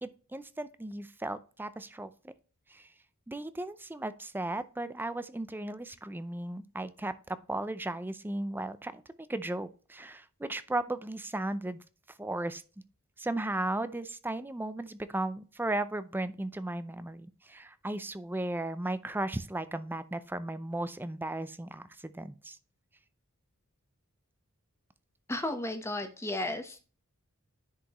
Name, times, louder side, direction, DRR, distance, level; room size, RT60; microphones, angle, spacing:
voice 1, 0.0-2.3 2.7-2.9 3.3-9.0 9.3-11.8 12.2-12.6 13.2-22.6, right 2 dB, 10° right, 13 dB, 0.5 m, -36 dB
voice 2, 25.3-26.8, left 1 dB, 10° left, 6 dB, 1.0 m, -34 dB
10.0 x 5.0 x 3.0 m, 0.37 s
head